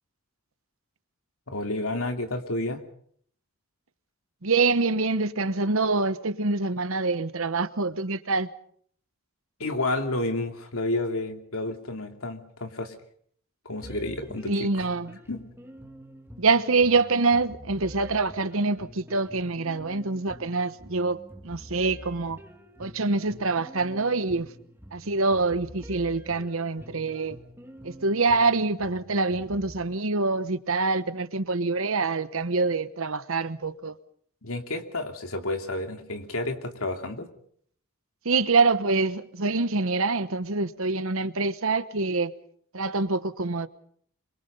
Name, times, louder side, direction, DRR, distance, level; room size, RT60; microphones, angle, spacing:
voice 1, 1.5-2.8 9.6-12.9 13.6-14.8 15.3-15.4 34.4-37.3, left 2 dB, 70° left, 2.8 m, -30 dB
voice 2, 4.4-8.5 14.4-15.2 16.4-22.4 22.8-24.5 24.9-27.4 27.8-34.0 38.2-42.3 42.7-43.7, right 3 dB, 65° right, 1.1 m, -25 dB
sound 1, 13.8-29.8, equal, 10° right, 1.8 m, -47 dB
27.0 x 24.0 x 5.5 m
head